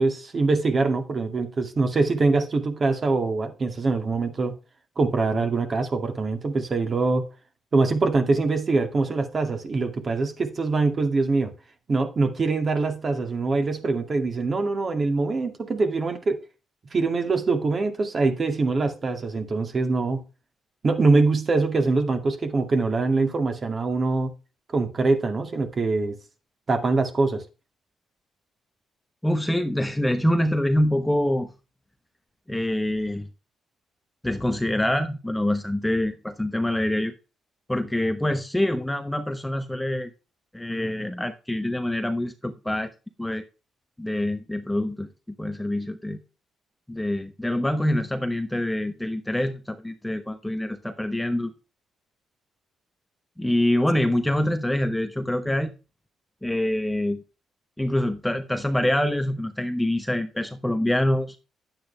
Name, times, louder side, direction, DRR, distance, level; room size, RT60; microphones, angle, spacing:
voice 1, 0.0-4.6 5.0-7.3 7.7-11.5 11.9-16.4 16.9-20.2 20.8-24.3 24.7-26.2 26.7-27.4, right 3 dB, 40° right, 2.3 m, -23 dB
voice 2, 29.2-31.5 32.5-33.3 34.2-37.1 37.7-40.1 40.5-42.9 43.2-43.4 44.0-45.1 45.4-46.2 46.9-51.5 53.4-55.7 56.4-57.2 57.8-61.4, left 1 dB, 5° left, 1.0 m, -25 dB
10.0 x 8.7 x 3.4 m
cardioid pair, 90°, 0 cm